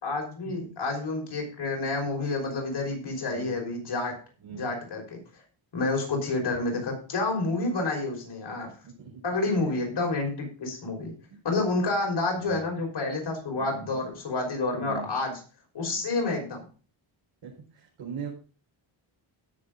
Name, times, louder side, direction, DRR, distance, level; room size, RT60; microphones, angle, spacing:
voice 1, 0.0-4.1 4.6-5.2 5.7-8.7 9.2-11.1 11.4-15.4 15.7-16.6, left 3 dB, 55° left, 1 dB, 5.6 m, -29 dB
voice 2, 3.3-3.6 4.4-4.7 9.0-9.2 9.8-9.9 11.3-11.4 11.8-11.9 12.4-12.7 13.5-13.9 14.7-15.1 15.9-16.0 17.4-18.3, right 6 dB, 75° right, -4 dB, 5.3 m, -41 dB
17.0 x 7.0 x 4.0 m, 0.37 s
cardioid pair, 110°, 48 cm